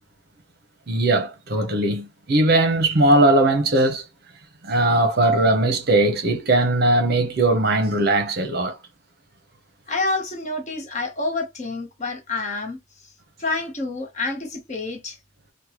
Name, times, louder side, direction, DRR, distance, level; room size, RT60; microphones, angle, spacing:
voice 1, 0.9-4.0 4.6-8.8, right 2 dB, 50° right, 0.7 m, -19 dB
voice 2, 9.9-12.8 13.4-15.2, left 3 dB, 35° left, 0.8 m, -28 dB
3.2 x 2.2 x 2.9 m
head